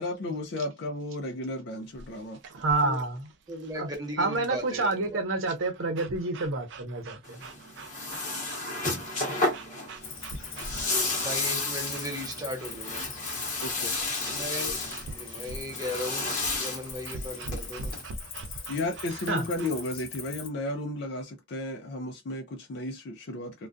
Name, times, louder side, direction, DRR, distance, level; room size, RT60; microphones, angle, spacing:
voice 1, 0.0-2.4 13.6-14.0 18.7-23.7, left 1 dB, 55° left, 0.4 m, -34 dB
sound 1, 1.9-19.9, right 3 dB, 60° right, 0.4 m, -44 dB
voice 2, 2.5-3.3 3.8-3.9 4.2-7.4 19.1-19.4, right 3 dB, 80° right, 0.7 m, -28 dB
voice 3, 3.5-5.2 11.2-13.0 14.3-14.8 15.1-17.9, left 1 dB, 20° right, 0.7 m, -37 dB
sound 2, 7.2-18.0, left 2 dB, 40° left, 0.9 m, -32 dB
Cricket, 10.0-20.5, left 6 dB, 80° left, 0.8 m, -41 dB
2.2 x 2.2 x 2.5 m
head